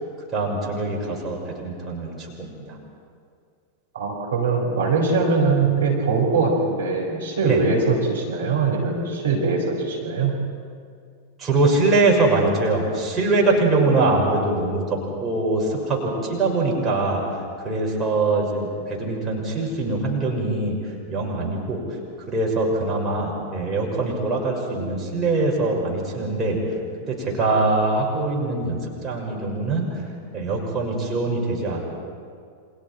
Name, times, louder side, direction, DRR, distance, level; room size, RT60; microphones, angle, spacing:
voice 1, 0.3-2.8 7.4-7.6 11.4-17.2 17.6-20.8 21.1-21.8 22.3-26.6 27.1-28.8 29.0-29.9 30.3-31.8, right 2 dB, 20° right, -2 dB, 6.1 m, -23 dB
voice 2, 3.9-10.3, right 4 dB, 70° right, -1 dB, 4.8 m, -22 dB
29.5 x 26.0 x 4.6 m, 2.3 s
figure-of-eight pair, 90°, 0 cm